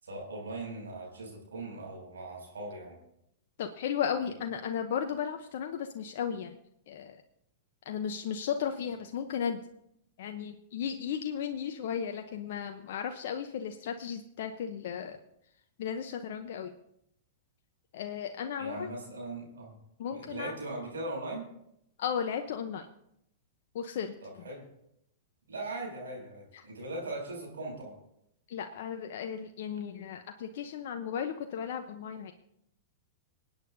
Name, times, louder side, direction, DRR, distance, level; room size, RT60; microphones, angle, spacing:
voice 1, 0.0-3.0 18.6-19.7 20.1-21.5 24.2-24.6 25.5-27.9, right 2 dB, 80° right, -1 dB, 6.3 m, -39 dB
voice 2, 3.6-6.6 6.9-7.2 7.9-9.6 10.2-15.2 15.8-16.7 17.9-18.9 20.0-20.5 22.0-22.9 23.7-24.1 26.5-26.7 28.5-32.3, left 8 dB, 60° left, 5 dB, 0.8 m, -35 dB
26.0 x 8.8 x 2.7 m, 0.77 s
hypercardioid pair, 110°, 0 cm